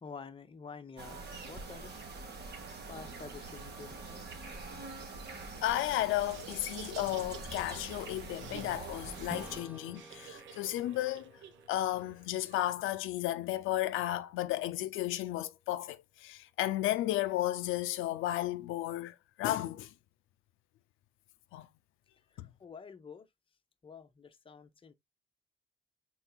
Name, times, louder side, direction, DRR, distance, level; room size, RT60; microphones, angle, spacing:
voice 1, 0.0-2.0 2.9-4.3 22.3-23.3 23.8-24.9, left 5 dB, 25° left, 0.7 m, -49 dB
sound 1, 1.0-9.6, right 3 dB, 55° right, 1.4 m, -45 dB
voice 2, 5.6-11.3 11.7-19.9 21.5-21.7 22.4-22.5, left 14 dB, 85° left, 0.4 m, -33 dB
Laughter, 6.1-12.7, right 8 dB, 70° right, 0.8 m, -51 dB
Strum, 9.3-14.2, right 1 dB, 10° right, 0.6 m, -53 dB
4.4 x 3.9 x 2.2 m
cardioid pair, 90°, 20 cm